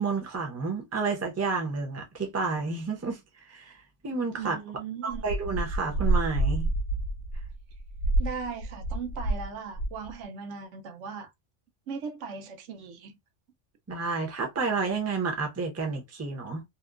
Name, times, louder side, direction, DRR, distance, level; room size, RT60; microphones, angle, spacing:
voice 1, 0.0-3.2 3.5-3.7 4.0-4.6 5.0-6.7 13.9-16.6, right 4 dB, 15° right, 0.5 m, -30 dB
voice 2, 4.3-5.3 8.2-11.3 11.9-13.2, right 6 dB, 80° right, 0.9 m, -38 dB
sound 1, 5.1-9.5 9.7-10.1, right 2 dB, 70° left, 1.0 m, -28 dB
2.8 x 2.1 x 2.3 m
omnidirectional pair, 1.2 m